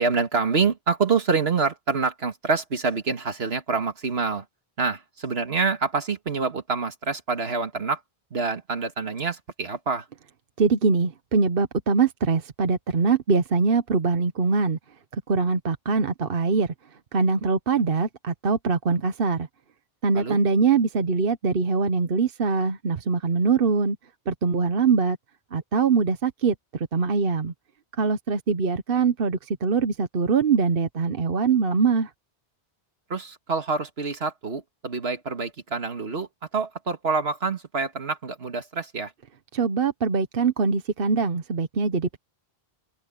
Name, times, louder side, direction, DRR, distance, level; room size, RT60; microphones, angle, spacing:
voice 1, 0.0-4.5 4.8-8.0 8.3-10.1 20.1-20.4 33.1-39.1, right 4 dB, 80° right, 2.1 m, -26 dB
voice 2, 10.6-14.8 15.3-16.7 17.1-19.5 20.0-24.0 24.3-25.2 25.5-27.5 28.0-32.1 39.5-42.2, right 5 dB, 65° right, 1.2 m, -23 dB
omnidirectional pair, 1.0 m